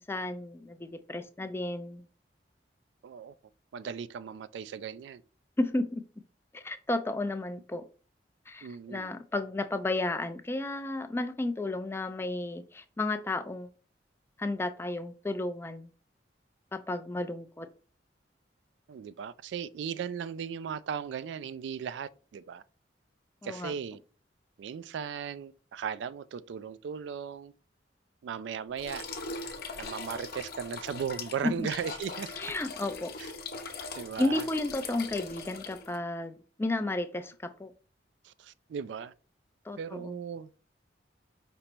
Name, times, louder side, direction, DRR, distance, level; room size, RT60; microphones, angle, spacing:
voice 1, 0.0-2.0 5.6-6.0 6.5-7.8 8.5-13.7 14.4-15.9 16.7-17.7 23.4-23.7 31.4-31.7 32.4-33.1 33.7-33.8 34.2-37.7 39.7-40.1, left 2 dB, 15° left, 0.3 m, -33 dB
voice 2, 3.0-3.3 3.7-5.2 8.6-9.1 18.9-22.6 23.4-24.0 24.6-27.5 28.2-29.1 29.8-32.3 33.2-33.3 33.9-34.5 38.2-39.1 39.8-40.5, right 7 dB, 85° right, 0.3 m, -37 dB
sound 1, 28.8-36.0, left 4 dB, 60° left, 0.7 m, -41 dB
5.2 x 2.0 x 4.4 m
head